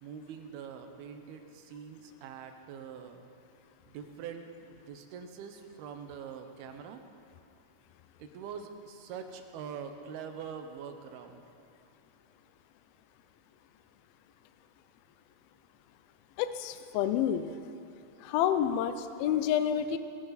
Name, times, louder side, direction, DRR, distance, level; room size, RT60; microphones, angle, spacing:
voice 1, 0.0-3.3 3.9-7.0 8.2-11.4, right 7 dB, 75° right, 6 dB, 2.7 m, -44 dB
voice 2, 16.4-17.6 18.2-20.0, left 9 dB, 80° left, 10 dB, 2.2 m, -29 dB
19.0 x 15.0 x 4.1 m, 2.6 s
omnidirectional pair, 4.9 m